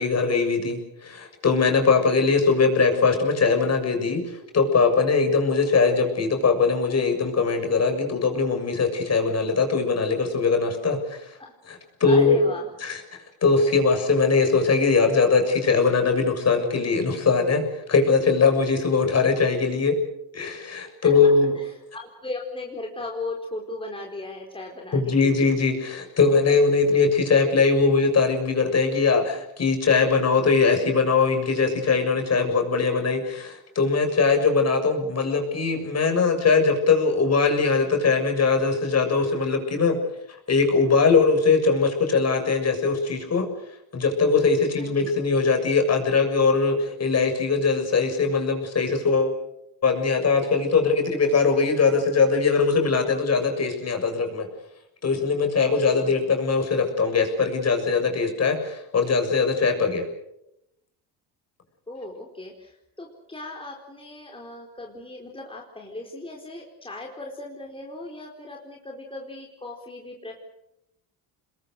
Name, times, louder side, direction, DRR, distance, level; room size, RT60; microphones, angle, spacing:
voice 1, 0.0-11.3 11.7-12.4 12.8-20.0 20.3-21.5 24.9-40.0 40.5-43.5 43.9-49.4 49.8-54.5 55.0-60.0, left 4 dB, 35° left, 5 dB, 6.9 m, -21 dB
voice 2, 12.0-12.7 21.0-21.1 21.6-25.5 44.8-45.2 55.7-56.0 61.9-70.4, left 2 dB, 15° left, 0 dB, 4.3 m, -37 dB
27.5 x 21.5 x 6.7 m, 0.83 s
supercardioid pair, 90°, 42 cm